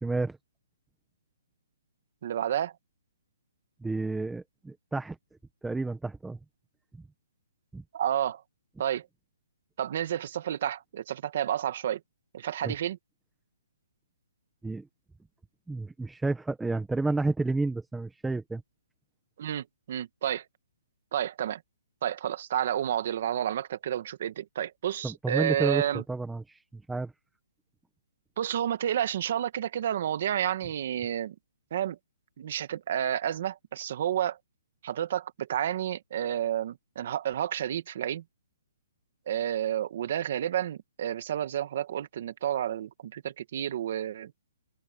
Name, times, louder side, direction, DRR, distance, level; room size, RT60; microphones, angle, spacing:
voice 1, 0.0-0.4 3.8-5.2 5.6-6.4 7.7-7.8 12.6-12.7 14.6-14.9 15.7-18.6 25.0-27.1, right 3 dB, 5° right, 1.4 m, -31 dB
voice 2, 2.2-2.7 7.9-8.4 8.8-9.1 9.8-12.0 12.3-13.0 19.4-20.4 21.1-21.6 22.0-26.0 28.4-31.3 31.7-32.0 32.4-34.4 34.8-38.2 39.3-44.3, right 10 dB, 40° right, 1.4 m, -30 dB
open air
hypercardioid pair, 170°, 0 cm